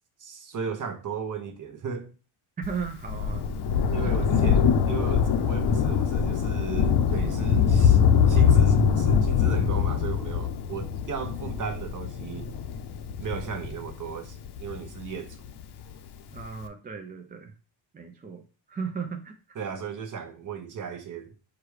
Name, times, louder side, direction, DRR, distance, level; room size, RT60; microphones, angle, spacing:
voice 1, 0.2-2.1 3.9-8.0 8.3-12.5 13.2-15.4 19.5-21.3, right 6 dB, 40° right, 0.9 m, -36 dB
Thunder, 2.6-15.5 16.4-16.5, left 7 dB, 55° left, 0.7 m, -23 dB
voice 2, 2.6-3.5 4.1-4.3 16.3-17.5 17.9-19.3, right 5 dB, 20° right, 0.4 m, -36 dB
4.8 x 2.3 x 4.8 m
cardioid pair, 130°, 48 cm